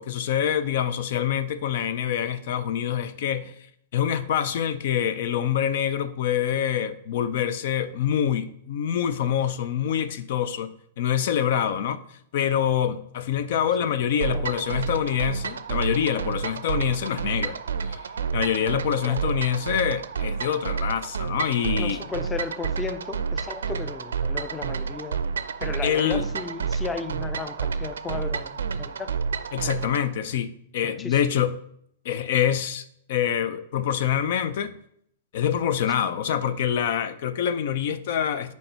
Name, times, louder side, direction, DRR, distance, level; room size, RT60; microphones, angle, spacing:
voice 1, 0.0-3.5 3.9-10.7 11.0-12.0 12.3-17.6 17.9-18.0 18.3-22.0 25.8-26.2 29.5-31.5 32.0-34.7 35.3-38.5, left 9 dB, 60° left, 0.5 m, -25 dB
voice 2, 13.8-14.5 19.0-19.2 21.6-25.2 25.6-29.1 29.7-29.9 30.8-31.3, left 5 dB, 15° left, 0.6 m, -35 dB
sound 1, 14.2-30.1, right 6 dB, 75° right, 0.4 m, -30 dB
5.3 x 4.6 x 5.5 m
hypercardioid pair, 110°, 0 cm